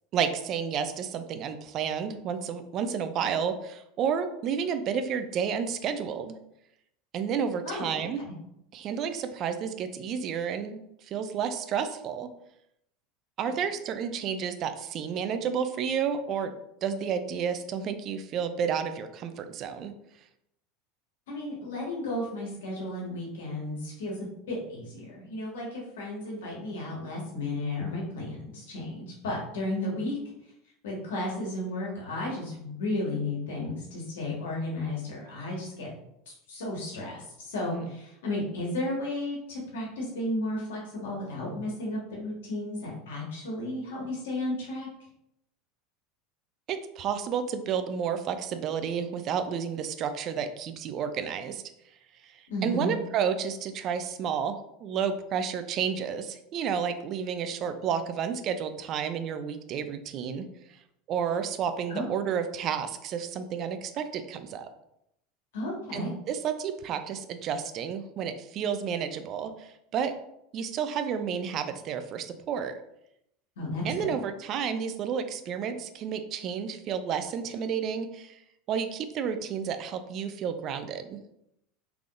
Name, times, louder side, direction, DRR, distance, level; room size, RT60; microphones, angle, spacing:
voice 1, 0.1-6.3 7.1-8.2 8.7-12.3 13.4-19.9 37.6-37.8 46.7-51.6 52.2-60.5 61.1-64.7 65.9-70.1 70.5-72.8 73.8-78.4 78.7-81.2, right 7 dB, 50° right, 9 dB, 0.4 m, -31 dB
voice 2, 21.3-24.1 24.5-30.2 30.8-35.9 36.3-44.9 52.5-52.9 61.9-62.0 65.5-66.1 73.6-74.2, left 1 dB, 85° left, -3 dB, 1.5 m, -33 dB
3.6 x 3.4 x 2.5 m, 0.79 s
hypercardioid pair, 100°, 0 cm